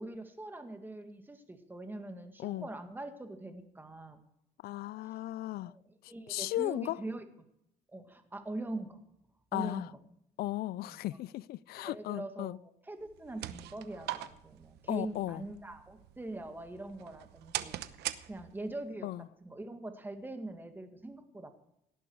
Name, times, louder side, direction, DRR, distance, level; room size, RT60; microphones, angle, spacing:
voice 1, 0.0-4.2 5.1-5.2 5.6-7.2 7.9-9.0 9.5-10.0 10.8-11.0 11.8-12.6 12.8-17.8 18.3-19.1 19.4-21.5, right 2 dB, 10° right, 2.0 m, -42 dB
voice 2, 4.6-5.7 6.3-7.0 9.5-9.9 10.4-12.6 14.9-15.4 19.0-19.2, left 16 dB, 65° left, 0.4 m, -36 dB
sound 1, 13.0-18.8, right 14 dB, 80° right, 0.9 m, -43 dB
18.0 x 11.0 x 4.8 m
cardioid pair, 110°, 17 cm